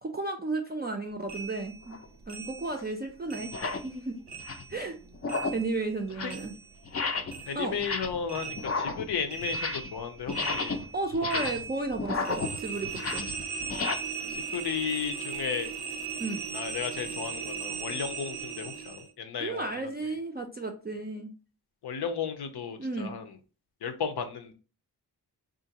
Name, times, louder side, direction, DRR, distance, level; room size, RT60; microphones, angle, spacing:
voice 1, 0.0-2.0 2.3-3.5 3.8-4.2 4.7-5.0 5.5-6.5 7.5-7.7 10.9-13.3 16.2-16.4 19.4-21.3 22.8-23.2, right 3 dB, 25° right, 2 dB, 0.4 m, -33 dB
sound 1, 1.3-4.0 4.3-7.0 7.3-19.1, right 6 dB, 80° right, 0.6 m, -38 dB
sound 2, 1.9-2.1 2.8-2.9 3.4-3.9 4.3-4.7 5.1-5.7 6.0-6.5 6.9-7.4 7.7-8.3 8.6-10.0 10.2-13.9, left 4 dB, 40° left, 0.4 m, -33 dB
voice 2, 7.5-10.8 11.3-11.4 14.3-15.7 16.5-19.9 21.8-23.2 23.8-24.5, left 6 dB, 85° left, 8 dB, 0.6 m, -34 dB
3.7 x 2.5 x 2.8 m, 0.35 s
wide cardioid pair, 100°, 39 cm